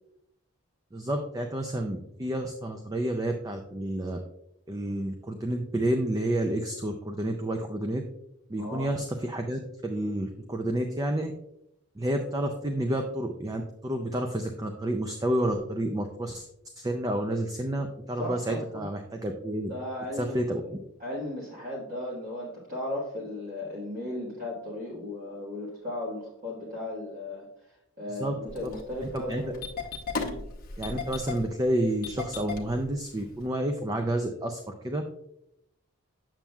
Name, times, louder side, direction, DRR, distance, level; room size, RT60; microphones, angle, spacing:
voice 1, 0.9-4.2 4.7-8.0 8.5-11.3 12.0-16.5 16.8-19.7 20.2-20.6 28.1-28.3 28.6-28.7 29.0-29.4 30.8-35.0, right 1 dB, 15° right, 4 dB, 0.4 m, -30 dB
voice 2, 8.6-8.9 18.2-18.9 19.7-20.4 21.0-27.5 28.0-29.6 30.2-30.4, left 1 dB, 40° right, -5 dB, 1.4 m, -36 dB
Engine starting, 28.5-33.4, left 4 dB, 40° left, 0.8 m, -37 dB
7.2 x 7.1 x 2.3 m, 0.81 s
head